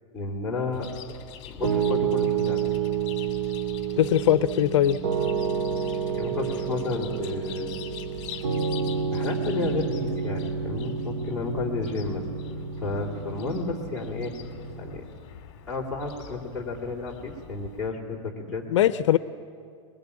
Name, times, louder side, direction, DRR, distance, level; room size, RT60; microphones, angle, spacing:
voice 1, 0.1-0.9 1.5-2.6 6.1-7.8 8.3-8.4 9.1-12.2 12.8-14.3 14.8-15.1 15.7-18.6, left 3 dB, ahead, -8 dB, 3.4 m, -32 dB
Chirp tweet, 0.7-17.9, left 10 dB, 35° left, 2.3 m, -44 dB
Piano, 1.6-15.0, right 7 dB, 60° right, 2.2 m, -29 dB
voice 2, 4.0-5.0 18.7-19.2, left 11 dB, 65° left, 13 dB, 0.6 m, -20 dB
22.0 x 21.5 x 8.7 m, 2.3 s
supercardioid pair, 170°, 16 cm